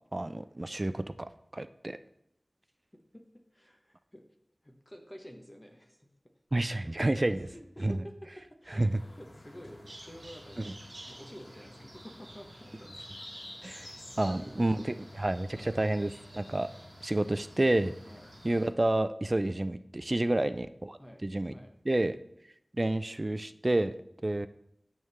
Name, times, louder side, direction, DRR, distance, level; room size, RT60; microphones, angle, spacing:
voice 1, 0.1-1.0 1.5-2.0 6.5-7.5 7.8-8.0 8.7-9.0 13.6-16.7 17.0-17.9 18.4-21.5 21.9-22.2 22.7-24.5, right 1 dB, 35° right, 12 dB, 0.4 m, -29 dB
voice 2, 2.9-4.2 4.6-6.1 7.1-12.9 14.1-15.2 15.5-15.9 18.0-18.3 20.2-20.5 21.0-21.8, equal, 20° left, 3 dB, 1.0 m, -51 dB
sound 1, 8.9-18.7, left 1 dB, 75° left, 1.7 m, -50 dB
Bird vocalization bird call bird song, 9.9-18.7, right 2 dB, 55° right, 0.9 m, -54 dB
9.4 x 3.6 x 6.8 m, 0.76 s
wide cardioid pair, 60°, 0 cm